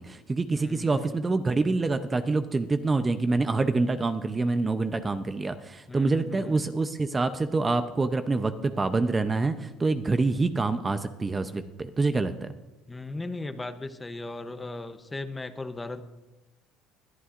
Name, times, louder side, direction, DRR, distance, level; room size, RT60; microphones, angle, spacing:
voice 1, 0.0-12.5, right 3 dB, 20° right, 10 dB, 0.6 m, -26 dB
voice 2, 0.5-1.2 5.9-6.6 12.9-16.0, left 2 dB, 15° left, 10 dB, 0.7 m, -37 dB
20.5 x 11.5 x 2.5 m, 1.1 s
cardioid pair, 120°, 0 cm